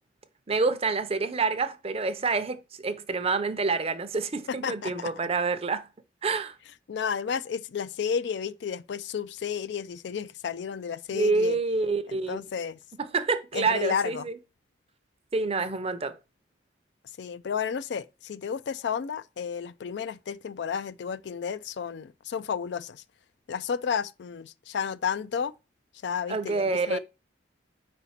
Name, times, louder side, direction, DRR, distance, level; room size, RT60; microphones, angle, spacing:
voice 1, 0.5-5.9 6.2-6.6 11.1-12.4 13.0-14.4 15.3-16.2 26.3-27.0, right 4 dB, 30° right, 0.6 m, -27 dB
voice 2, 4.5-5.1 6.9-11.6 12.1-12.8 13.5-14.3 17.2-23.0 23.5-25.5 26.0-27.0, left 7 dB, 65° left, 0.4 m, -32 dB
5.0 x 4.2 x 5.7 m
head